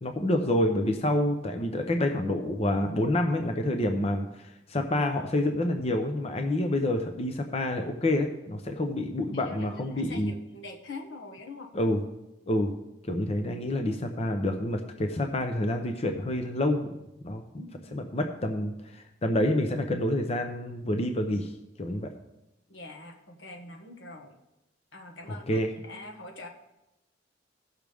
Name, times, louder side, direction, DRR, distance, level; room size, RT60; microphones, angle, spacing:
voice 1, 0.0-10.3 11.7-12.0 12.5-12.7 13.0-17.0 17.2-17.4 17.9-21.5 21.8-22.1 25.3-25.7, left 1 dB, 35° left, 5 dB, 0.7 m, -28 dB
voice 2, 9.3-11.7 17.6-18.2 22.7-24.3 24.9-26.5, left 2 dB, 80° left, 3 dB, 1.5 m, -44 dB
16.5 x 6.1 x 3.5 m, 0.93 s
head